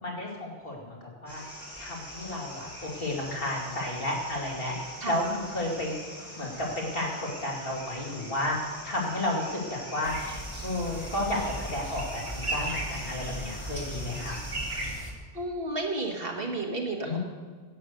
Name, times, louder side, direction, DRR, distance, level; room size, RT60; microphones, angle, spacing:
voice 1, 0.0-1.4 1.8-5.9 6.4-10.2 10.6-14.4 17.0-17.2, left 1 dB, 60° left, -3 dB, 3.0 m, -32 dB
sound 1, 1.3-14.9, equal, 20° left, 4.8 m, -44 dB
sound 2, 10.0-15.1, right 1 dB, 30° right, 1.9 m, -36 dB
voice 2, 15.3-17.2, right 2 dB, 65° right, 1 dB, 1.9 m, -32 dB
11.5 x 8.8 x 6.6 m, 1.5 s
omnidirectional pair, 1.1 m